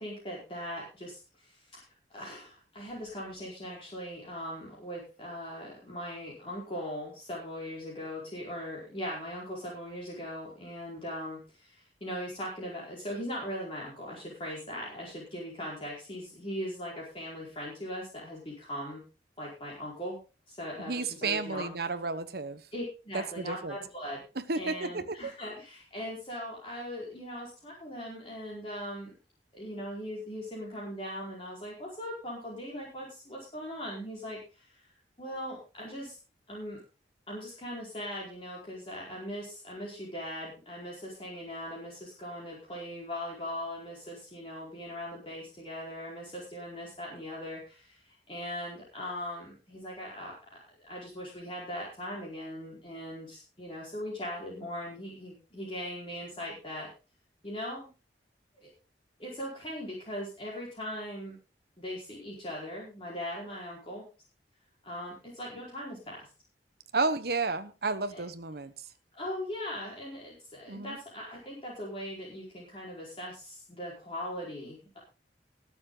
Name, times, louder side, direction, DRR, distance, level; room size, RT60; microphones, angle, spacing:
voice 1, 0.0-1.8 2.1-19.0 19.4-20.2 20.5-21.7 22.7-24.2 24.5-29.1 29.5-34.9 35.2-36.2 36.5-36.8 37.3-50.3 50.9-56.9 57.4-57.9 58.6-58.7 59.2-61.4 61.8-64.1 64.8-66.3 68.1-68.2 69.1-75.0, equal, 30° left, -4 dB, 4.7 m, -40 dB
voice 2, 20.9-22.6 23.1-23.7 24.5-25.3 66.9-68.7 70.7-71.0, right 3 dB, 60° right, 10 dB, 1.1 m, -32 dB
21.0 x 7.3 x 3.9 m, 0.32 s
head